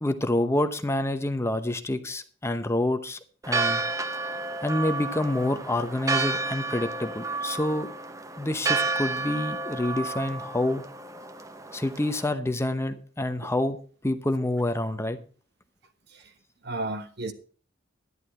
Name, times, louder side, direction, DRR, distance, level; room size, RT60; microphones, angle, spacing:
voice 1, 0.0-3.2 3.5-3.8 4.6-7.9 8.4-10.8 11.7-13.8 14.0-15.2, left 1 dB, 15° left, 0.9 m, -27 dB
Church bell, 3.4-12.3, right 3 dB, 15° right, 0.9 m, -31 dB
voice 2, 16.6-17.3, right 2 dB, 60° right, 1.5 m, -33 dB
11.0 x 11.0 x 4.4 m
head